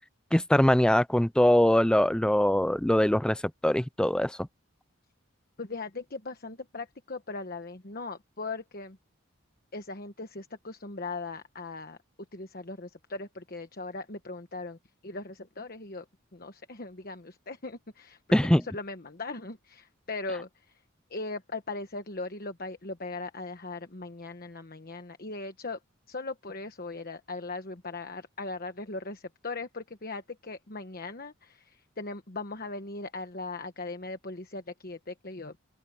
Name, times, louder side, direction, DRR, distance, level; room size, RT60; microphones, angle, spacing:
voice 1, 0.3-4.5 18.3-18.6, left 1 dB, 5° left, 0.4 m, -22 dB
voice 2, 5.6-9.0 9.7-12.0 12.3-16.0 16.3-18.2 18.5-20.8 21.1-25.8 26.1-35.6, left 3 dB, 45° left, 1.2 m, -39 dB
open air
head